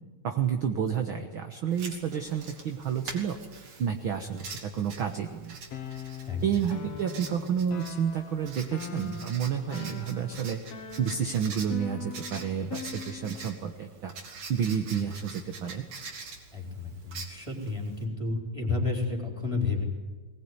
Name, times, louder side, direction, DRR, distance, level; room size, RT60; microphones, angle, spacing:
voice 1, 0.2-3.4 3.8-5.6 6.4-10.6 11.0-14.1 14.5-15.8, right 8 dB, 55° right, 5 dB, 1.7 m, -30 dB
Writing, 1.7-18.0, right 4 dB, 70° right, 4.0 m, -45 dB
sound 1, 5.7-13.6, left 7 dB, 60° left, 2.6 m, -42 dB
voice 2, 16.5-19.8, left 3 dB, 10° left, 1 dB, 4.2 m, -31 dB
20.5 x 20.0 x 9.7 m, 1.3 s
omnidirectional pair, 3.4 m